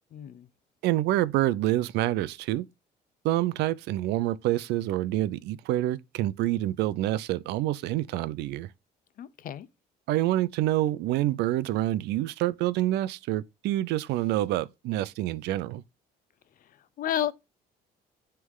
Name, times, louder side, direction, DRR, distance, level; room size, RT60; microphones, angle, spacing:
voice 1, 0.1-0.5 9.2-9.7 17.0-17.3, left 10 dB, 55° left, 0.6 m, -31 dB
voice 2, 0.8-2.6 3.2-8.7 10.1-15.8, right 15 dB, 85° right, 0.5 m, -27 dB
9.4 x 3.4 x 3.7 m
cardioid pair, 110°, 17 cm